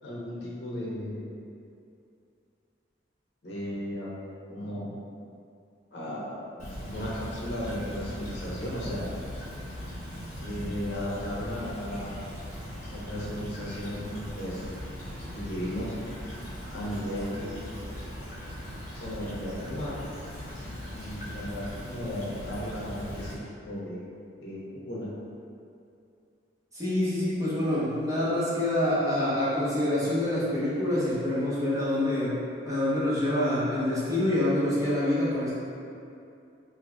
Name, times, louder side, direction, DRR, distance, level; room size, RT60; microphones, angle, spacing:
voice 1, 0.0-1.3 3.4-4.1 4.5-4.9 5.9-9.1 10.4-12.1 12.9-14.7 15.3-15.9 16.7-18.1 18.9-20.0 20.9-24.0 24.4-25.1, equal, 65° left, -7 dB, 0.8 m, -35 dB
Stream / Trickle dribble, 6.6-23.3, equal, 35° left, 0.9 m, -39 dB
voice 2, 26.7-35.5, left 1 dB, 15° right, -10 dB, 0.8 m, -26 dB
3.7 x 2.8 x 2.2 m, 2.5 s
head